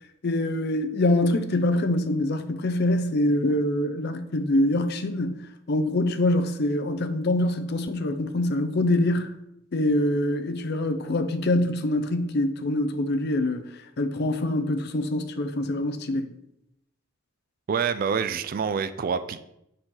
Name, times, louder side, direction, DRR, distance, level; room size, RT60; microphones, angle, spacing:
voice 1, 0.2-9.4 9.7-16.3, left 1 dB, 55° left, 0.5 m, -25 dB
voice 2, 17.7-19.4, right 6 dB, 45° right, 0.3 m, -26 dB
6.4 x 4.5 x 3.8 m
head